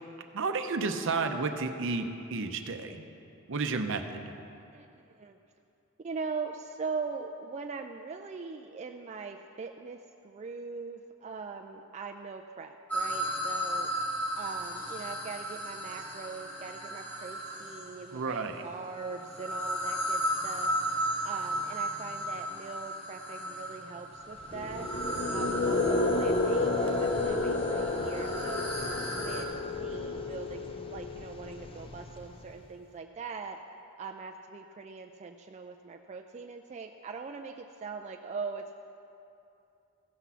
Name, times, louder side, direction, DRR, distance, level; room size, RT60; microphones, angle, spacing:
voice 1, 0.3-3.0 3.5-4.3 18.1-18.6, right 4 dB, 60° right, 7 dB, 0.7 m, -32 dB
voice 2, 6.0-10.0 10.2-13.9 14.3-20.7 21.2-24.9 25.3-28.8 29.1-33.6 34.0-38.7, right 4 dB, 30° right, 3 dB, 0.3 m, -41 dB
sound 1, 12.9-18.1 18.9-29.4, equal, 5° left, 1.4 m, -35 dB
sound 2, 24.4-32.5, left 2 dB, 25° left, 0.5 m, -31 dB
15.0 x 6.1 x 5.6 m, 2.7 s
head